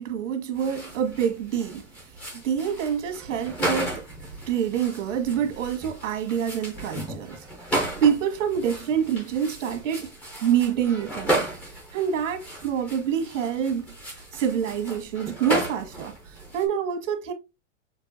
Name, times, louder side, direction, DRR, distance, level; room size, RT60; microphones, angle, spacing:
voice 1, 0.0-1.8 2.4-4.0 4.5-7.4 8.0-10.1 10.4-11.5 11.9-13.9 14.3-17.3, right 8 dB, 85° right, 1.5 m, -26 dB
sound 1, 0.5-16.7, right 1 dB, 5° left, 0.4 m, -34 dB
6.5 x 2.7 x 2.6 m
supercardioid pair, 175°, 37 cm